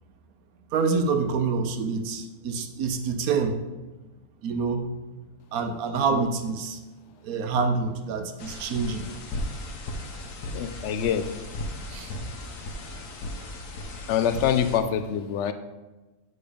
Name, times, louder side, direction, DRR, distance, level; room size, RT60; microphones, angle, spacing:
voice 1, 0.7-3.6 4.4-4.9 5.5-6.8 7.2-9.0 11.9-12.2, right 5 dB, 70° right, 7 dB, 1.2 m, -27 dB
sound 1, 8.4-14.8, left 1 dB, 90° left, 1.4 m, -36 dB
voice 2, 10.5-11.3 14.1-15.5, left 8 dB, 70° left, 10 dB, 0.7 m, -25 dB
8.5 x 4.1 x 5.0 m, 1.1 s
omnidirectional pair, 1.6 m